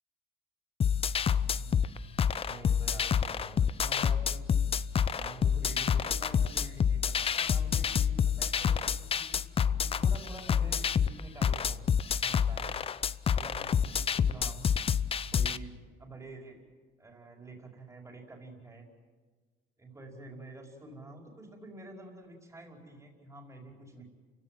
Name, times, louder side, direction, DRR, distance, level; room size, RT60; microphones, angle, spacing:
sound 1, 0.8-15.6, left 7 dB, 35° left, 0.7 m, -28 dB
voice 1, 1.5-2.0 2.5-4.6 5.1-9.4 9.8-11.8 12.2-12.7 13.3-14.7 15.3-16.6 17.0-18.9 19.8-24.1, right 2 dB, 15° right, 1 dB, 5.2 m, -48 dB
29.5 x 16.5 x 9.3 m, 1.4 s
cardioid pair, 110°, 17 cm